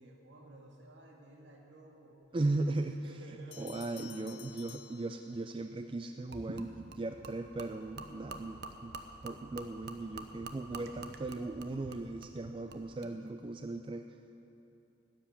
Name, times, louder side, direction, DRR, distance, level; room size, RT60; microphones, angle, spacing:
voice 1, 0.0-2.2 2.6-3.8, right 2 dB, 70° right, 0 dB, 2.1 m, -53 dB
voice 2, 2.3-3.0 3.6-9.0 9.2-14.1, right 2 dB, 25° right, 7 dB, 0.3 m, -37 dB
sound 1, 3.5-5.7, left 11 dB, 80° left, 0.8 m, -53 dB
Gurgling / Liquid, 6.3-13.1, right 3 dB, 55° right, 0.8 m, -47 dB
12.5 x 7.8 x 9.9 m, 2.9 s
head